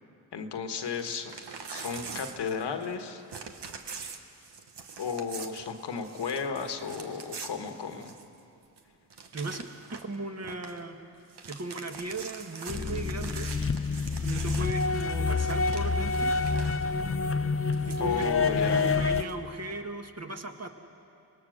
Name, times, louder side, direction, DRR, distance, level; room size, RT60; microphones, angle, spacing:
voice 1, 0.3-1.3 1.7-3.2 5.0-8.1 18.0-19.0, left 6 dB, 85° left, 6 dB, 1.5 m, -34 dB
Crumpling crinkling / Tearing, 0.8-3.0 3.3-8.4 8.8-8.9 9.1-10.1 10.4-10.8 11.2-16.9 17.7-19.3, right 5 dB, 85° right, 1.3 m, -44 dB
voice 2, 9.9-11.0 11.5-13.5 14.2-16.3 17.9-20.7, right 2 dB, 40° right, 5 dB, 1.7 m, -37 dB
sound 1, 12.7-19.2, left 4 dB, 35° left, 0.8 m, -27 dB
24.5 x 18.5 x 6.5 m, 2.6 s
cardioid pair, 45°, 40 cm